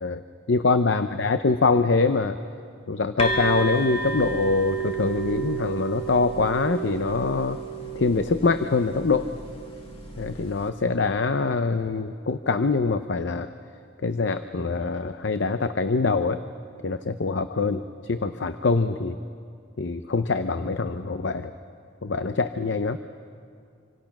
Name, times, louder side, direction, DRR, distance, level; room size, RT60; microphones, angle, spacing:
voice 1, 0.5-2.4 2.9-7.6 7.9-9.3 10.2-13.5 14.0-16.4 16.8-19.2 19.8-21.5 22.0-23.0, left 4 dB, 60° left, 10 dB, 0.6 m, -24 dB
sound 1, 3.2-10.7, right 4 dB, 30° left, 1.8 m, -32 dB
26.5 x 26.0 x 6.0 m, 2.3 s
head